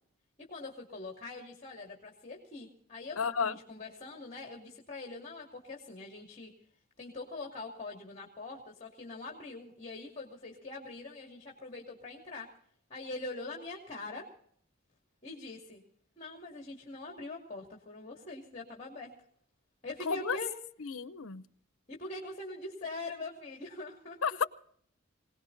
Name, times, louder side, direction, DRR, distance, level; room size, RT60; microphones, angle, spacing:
voice 1, 0.5-6.5 7.0-12.5 12.9-14.2 15.2-15.8 16.2-19.1 19.8-20.5 21.9-24.2, left 2 dB, 35° left, 0 dB, 2.5 m, -43 dB
voice 2, 3.2-3.6 20.1-20.4 20.8-21.4 24.2-24.4, left 6 dB, 85° left, 14 dB, 0.8 m, -32 dB
25.5 x 18.0 x 2.7 m, 0.62 s
head